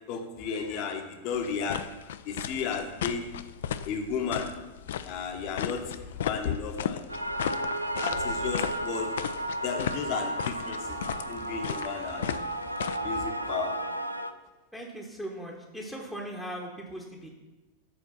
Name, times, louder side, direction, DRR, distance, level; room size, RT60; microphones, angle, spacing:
voice 1, 0.1-1.8 2.3-3.2 3.8-4.5 5.0-7.0 8.0-9.1 9.4-12.4 13.0-13.8, left 6 dB, 40° left, 4 dB, 0.8 m, -34 dB
sound 1, 1.3-13.0, left 9 dB, 60° left, 0.3 m, -35 dB
sound 2, 7.1-14.3, right 1 dB, 90° right, 0.4 m, -33 dB
voice 2, 14.7-17.3, right 1 dB, 5° right, -2 dB, 1.0 m, -39 dB
7.0 x 4.4 x 5.7 m, 1.1 s
figure-of-eight pair, 90°, 0 cm